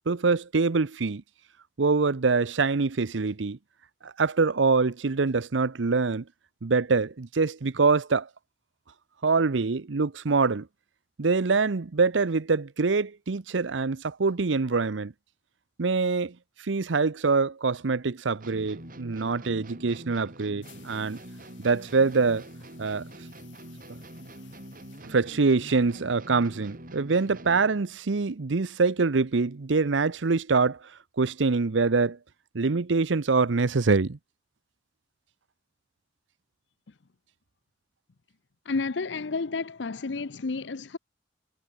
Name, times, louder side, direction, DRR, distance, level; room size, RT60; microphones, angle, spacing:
voice 1, 0.1-1.2 1.8-3.6 4.0-6.2 6.6-8.3 9.2-10.7 11.2-15.1 15.8-16.4 16.6-21.2 21.6-22.4 22.8-23.0 25.0-30.8 31.2-32.2 32.5-34.2, right 4 dB, 80° right, 0.7 m, -24 dB
sound 1, 18.4-27.8, right 1 dB, 50° right, 5.6 m, -45 dB
sound 2, 20.6-26.2, left 8 dB, 90° left, 4.8 m, -58 dB
voice 2, 38.7-41.0, left 4 dB, 70° left, 0.7 m, -31 dB
head